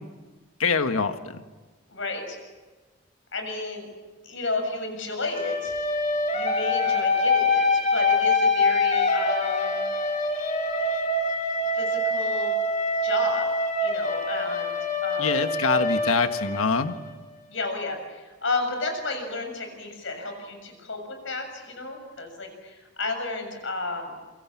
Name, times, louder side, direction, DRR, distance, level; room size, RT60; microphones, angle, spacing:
voice 1, 0.6-1.4 15.2-16.9, left 4 dB, 85° left, 8 dB, 1.5 m, -24 dB
voice 2, 1.9-2.4 3.3-3.9 4.2-5.7 6.3-9.8 11.7-12.5 13.0-13.5 13.8-14.7 15.0-15.6 17.5-24.2, left 3 dB, 60° left, 5 dB, 7.2 m, -32 dB
sound 1, 5.3-17.1, left 2 dB, 35° left, 3.4 m, -25 dB
28.0 x 24.0 x 7.3 m, 1.3 s
head